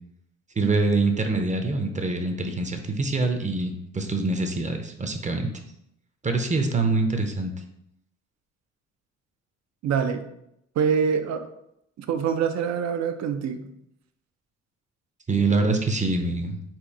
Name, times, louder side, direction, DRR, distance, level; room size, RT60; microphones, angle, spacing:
voice 1, 0.6-5.5 6.2-7.5 15.3-16.6, right 3 dB, 25° right, 5 dB, 0.6 m, -25 dB
voice 2, 9.8-10.2 10.8-11.5 12.0-13.7, right 7 dB, 65° right, 8 dB, 0.6 m, -25 dB
4.4 x 2.6 x 4.8 m, 0.78 s
cardioid pair, 90°, 30 cm